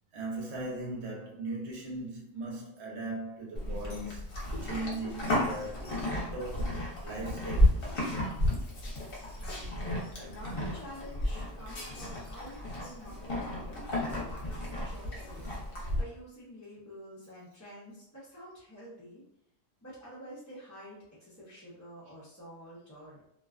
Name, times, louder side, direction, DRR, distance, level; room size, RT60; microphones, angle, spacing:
voice 1, 0.1-4.3 4.6-8.0, right 2 dB, 70° right, 1.0 m, -39 dB
Livestock farm animals working animals, 3.5-16.0, left 1 dB, 55° left, 0.9 m, -32 dB
voice 2, 9.4-13.7 14.0-19.2 19.8-23.2, equal, 20° left, 0.6 m, -49 dB
2.4 x 2.3 x 2.3 m
omnidirectional pair, 1.2 m